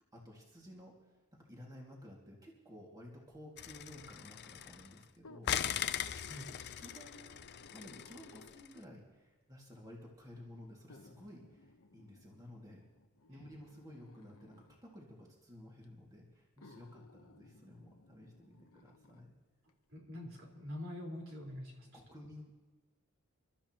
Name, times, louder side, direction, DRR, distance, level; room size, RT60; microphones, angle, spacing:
voice 1, 0.1-5.8 6.6-7.2 7.7-12.8 13.3-19.3 21.9-22.5, left 1 dB, 20° right, -3 dB, 2.2 m, -54 dB
sound 1, 3.6-5.0 5.4-8.7, left 9 dB, 50° left, 0.5 m, -40 dB
sound 2, 5.2-8.8 9.7-9.8 10.9-14.8 15.8-15.9 16.6-19.3 19.7-19.8, left 2 dB, 75° left, 1.0 m, -60 dB
voice 2, 19.9-21.9, left 1 dB, 65° right, -2 dB, 4.3 m, -45 dB
28.5 x 13.0 x 3.0 m, 1.3 s
head